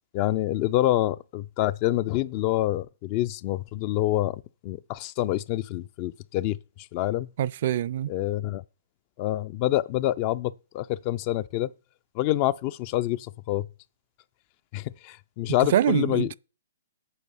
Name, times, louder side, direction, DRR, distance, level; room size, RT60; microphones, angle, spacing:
voice 1, 0.1-6.6 6.9-7.3 8.1-8.6 9.2-11.7 12.2-13.7 14.7-16.3, left 15 dB, 40° left, 0.4 m, -27 dB
voice 2, 7.4-8.1 15.7-16.3, right 11 dB, 55° right, 0.4 m, -24 dB
8.4 x 7.6 x 5.4 m
hypercardioid pair, 125°, 0 cm